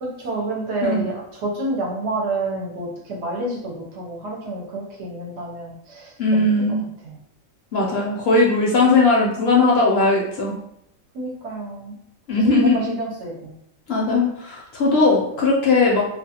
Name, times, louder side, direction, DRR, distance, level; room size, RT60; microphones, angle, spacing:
voice 1, 0.0-6.6 7.0-7.1 11.1-12.0 12.6-13.5, right 2 dB, 65° right, -2 dB, 0.9 m, -29 dB
voice 2, 6.2-6.8 7.7-10.6 12.3-12.9 13.9-16.0, left 3 dB, 60° left, -3 dB, 0.7 m, -18 dB
2.4 x 2.3 x 2.7 m, 0.74 s
omnidirectional pair, 1.4 m